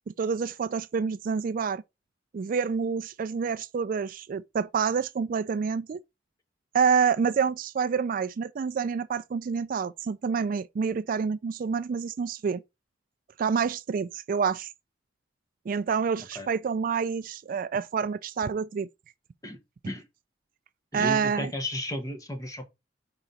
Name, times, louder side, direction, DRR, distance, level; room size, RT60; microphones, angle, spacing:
voice 1, 0.2-1.8 2.3-6.0 6.7-12.6 13.4-14.7 15.7-18.9 20.9-21.5, right 6 dB, 50° right, 0.3 m, -27 dB
voice 2, 20.9-22.6, left 1 dB, 20° left, 1.3 m, -34 dB
4.9 x 3.8 x 5.6 m
head